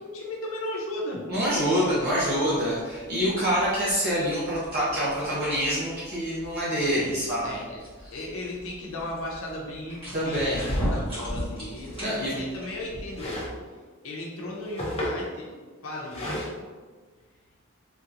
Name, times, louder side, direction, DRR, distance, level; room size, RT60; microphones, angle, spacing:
voice 1, 0.0-1.2 7.4-7.8 8.1-13.4 14.0-15.5 15.8-16.5, left 1 dB, 75° left, -2 dB, 0.6 m, -36 dB
sound 1, 1.3-13.6, equal, 25° right, 1.4 m, -38 dB
voice 2, 1.3-7.5 8.0-8.1 10.1-10.6 12.0-12.3, equal, 50° right, -9 dB, 0.8 m, -26 dB
sound 2, 9.7-9.8 10.5-10.9 11.8-12.5 13.1-13.6 14.4-15.3 16.1-16.5, equal, 30° left, 0.6 m, -34 dB
3.5 x 2.9 x 2.4 m, 1.5 s
head